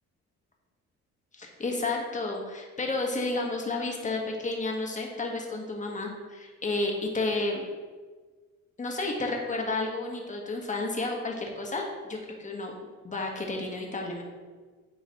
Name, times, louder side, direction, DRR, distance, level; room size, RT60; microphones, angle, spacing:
voice 1, 1.3-7.7 8.8-12.7 13.0-14.2, left 2 dB, 25° left, 0 dB, 1.3 m, -31 dB
9.5 x 3.9 x 2.9 m, 1.4 s
cardioid pair, 90°, 30 cm